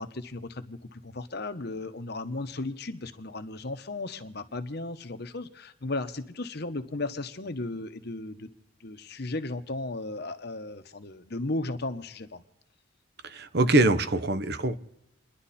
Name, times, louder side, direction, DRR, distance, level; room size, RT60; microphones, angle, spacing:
voice 1, 0.0-8.5 8.8-12.4, left 2 dB, 50° left, 9 dB, 1.1 m, -35 dB
voice 2, 13.2-14.8, right 2 dB, 50° right, 12 dB, 0.8 m, -23 dB
29.0 x 11.0 x 4.2 m, 0.86 s
head